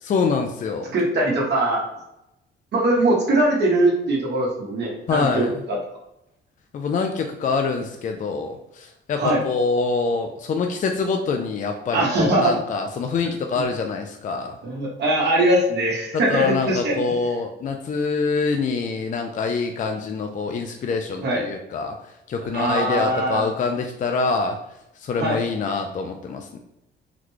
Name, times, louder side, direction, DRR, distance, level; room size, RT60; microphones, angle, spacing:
voice 1, 0.0-0.9 5.1-5.5 6.7-14.5 16.3-22.0 22.3-24.6 25.0-26.6, left 4 dB, 40° left, 4 dB, 0.4 m, -25 dB
voice 2, 0.9-1.8 2.7-5.8 9.2-9.4 11.9-12.6 14.6-16.9 21.2-21.5 22.5-23.4 25.2-25.4, right 1 dB, 60° right, -2 dB, 1.1 m, -21 dB
3.9 x 2.2 x 3.1 m, 0.85 s
cardioid pair, 90°, 20 cm